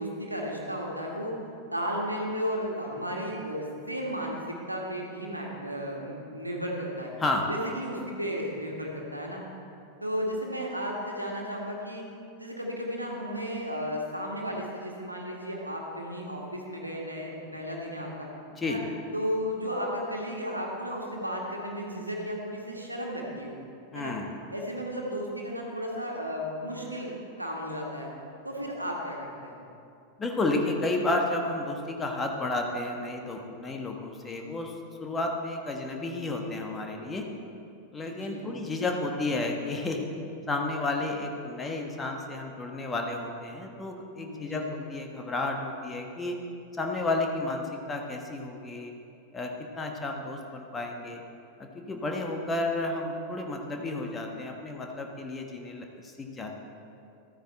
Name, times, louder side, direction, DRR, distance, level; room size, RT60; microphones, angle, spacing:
voice 1, 0.0-1.4 1.7-7.1 7.5-9.4 10.0-12.0 12.4-18.3 18.6-18.8 19.1-23.6 23.9-24.2 24.5-28.1 28.4-29.6 38.1-38.5 44.2-44.7, equal, 85° right, -1 dB, 1.7 m, -34 dB
voice 2, 23.9-24.2 30.2-34.7 35.0-37.2 37.9-40.1 40.5-44.6 44.9-46.4 46.8-48.9 49.3-51.2 51.6-56.6, left 2 dB, 15° left, 2 dB, 1.3 m, -32 dB
13.5 x 9.2 x 4.4 m, 2.6 s
figure-of-eight pair, 90°, 0 cm